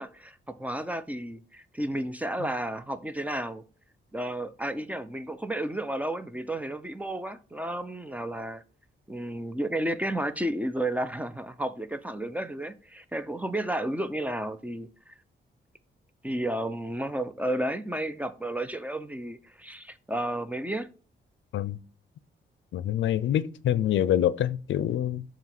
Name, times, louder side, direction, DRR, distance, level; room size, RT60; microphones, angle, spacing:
voice 1, 0.0-3.6 4.1-8.6 9.1-15.1 16.2-20.9, right 1 dB, 10° right, 0.6 m, -32 dB
voice 2, 22.7-25.2, left 11 dB, 85° left, 0.5 m, -26 dB
7.3 x 3.0 x 6.0 m
cardioid pair, 110°, 19 cm